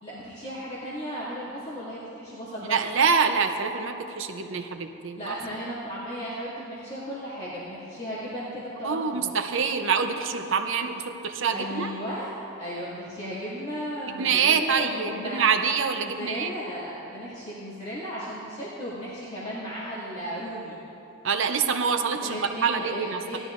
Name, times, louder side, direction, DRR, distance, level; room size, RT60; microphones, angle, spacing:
voice 1, 0.0-2.8 5.2-9.3 11.5-15.4 15.9-20.8 22.2-23.4, equal, 30° left, -11 dB, 2.2 m, -35 dB
voice 2, 2.7-5.3 8.8-11.9 14.2-16.5 21.2-23.4, right 6 dB, 60° right, 6 dB, 0.6 m, -25 dB
18.5 x 12.5 x 2.5 m, 2.9 s
head